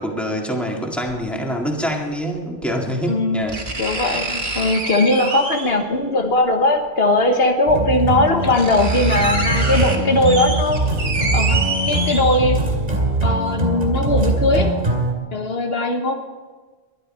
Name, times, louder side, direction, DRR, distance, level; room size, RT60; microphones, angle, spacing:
voice 1, 0.0-3.6, equal, ahead, 0 dB, 2.0 m, -25 dB
sound 1, 1.1-1.2 2.6-2.7 3.5-5.9 7.2-7.3 8.0-8.1 8.3-12.7 13.2-13.3, right 2 dB, 70° right, 2.0 m, -27 dB
voice 2, 3.1-3.5 3.8-10.9 11.3-12.6 13.2-14.7 15.3-16.2, left 2 dB, 75° left, 5 dB, 1.5 m, -19 dB
sound 2, 7.7-15.1, right 2 dB, 50° right, 2.5 m, -22 dB
20.5 x 11.5 x 4.4 m, 1.3 s
omnidirectional pair, 1.0 m